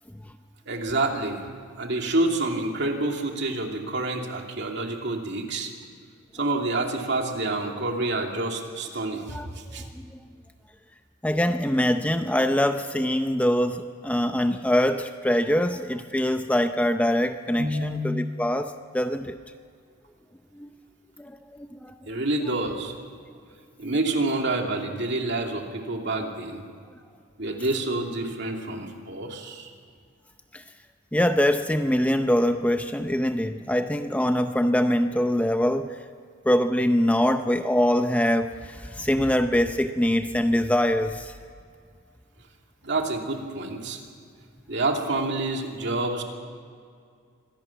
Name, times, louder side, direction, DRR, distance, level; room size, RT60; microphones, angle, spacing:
voice 1, 0.7-1.5 1.8-5.7 6.3-9.9 17.6-18.0 22.1-22.9 23.8-26.7 27.4-29.7 42.8-44.0 44.7-46.2, right 2 dB, 55° right, 2 dB, 2.7 m, -28 dB
voice 2, 11.2-19.4 20.6-20.7 21.2-21.9 30.5-30.6 31.1-36.0 36.5-41.3, left 1 dB, 5° left, 7 dB, 0.6 m, -23 dB
25.5 x 17.5 x 7.3 m, 2.2 s
head